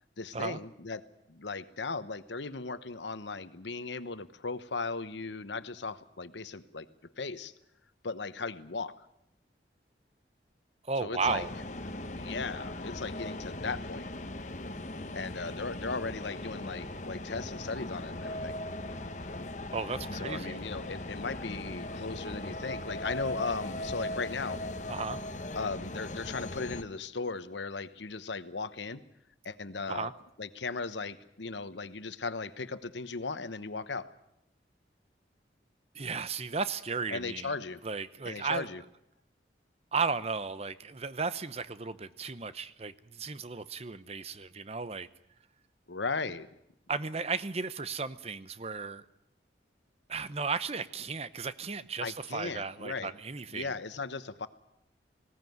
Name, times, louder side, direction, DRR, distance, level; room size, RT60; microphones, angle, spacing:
voice 1, 0.2-7.5 8.0-9.1 11.0-11.5 12.1-14.1 15.1-18.6 20.1-24.6 25.5-29.0 29.4-30.1 30.4-34.1 37.1-37.8 38.2-38.8 45.9-46.5 52.0-53.1 53.5-54.5, left 4 dB, 80° left, 13 dB, 1.1 m, -37 dB
voice 2, 10.8-11.5 19.7-20.6 24.9-25.2 29.9-30.1 35.9-37.5 37.8-38.7 39.9-45.1 46.9-49.0 50.1-53.7, right 4 dB, 35° right, 14 dB, 0.8 m, -34 dB
sound 1, 11.2-26.8, left 1 dB, 40° left, 1.1 m, -39 dB
19.5 x 17.0 x 9.4 m, 0.81 s
head